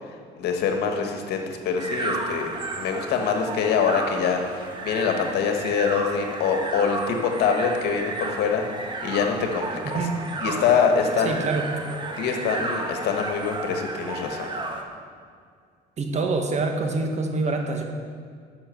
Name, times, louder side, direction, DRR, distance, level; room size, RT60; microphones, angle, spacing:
voice 1, 0.4-10.0 10.4-11.4 12.2-14.5, left 6 dB, 75° left, 4 dB, 1.7 m, -25 dB
sound 1, 1.8-14.8, right 2 dB, 25° right, 1.5 m, -33 dB
voice 2, 9.8-10.2 11.2-11.6 16.0-17.8, right 3 dB, 45° right, 4 dB, 1.7 m, -26 dB
11.5 x 6.4 x 7.9 m, 2.1 s
cardioid pair, 110°, 17 cm